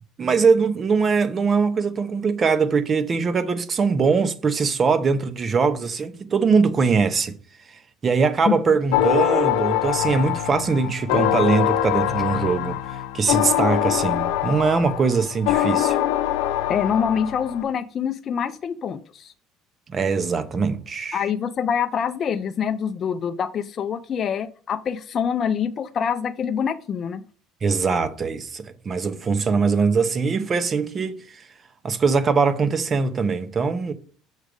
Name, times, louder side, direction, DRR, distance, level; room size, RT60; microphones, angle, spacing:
voice 1, 0.2-7.3 8.0-16.0 19.9-21.3 27.6-31.4 31.8-33.9, right 5 dB, 30° right, 0.7 m, -22 dB
sound 1, 8.9-17.6, left 12 dB, 90° left, 0.6 m, -23 dB
voice 2, 16.7-19.3 21.1-27.2, left 7 dB, 40° left, 0.4 m, -25 dB
6.3 x 5.1 x 4.9 m
cardioid pair, 125°, 0 cm